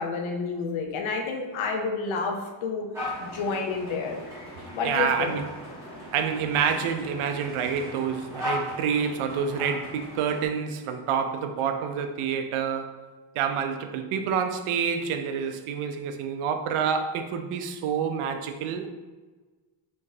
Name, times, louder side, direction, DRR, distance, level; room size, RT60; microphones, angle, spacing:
voice 1, 0.0-2.9 3.2-4.2 4.7-5.3, left 4 dB, 70° left, 1 dB, 0.7 m, -29 dB
sound 1, 2.9-10.5, left 1 dB, 5° right, 1.4 m, -38 dB
voice 2, 4.8-5.5 6.1-12.9 13.4-18.9, right 7 dB, 85° right, 7 dB, 0.6 m, -28 dB
4.3 x 3.0 x 2.7 m, 1.3 s
cardioid pair, 170°, 49 cm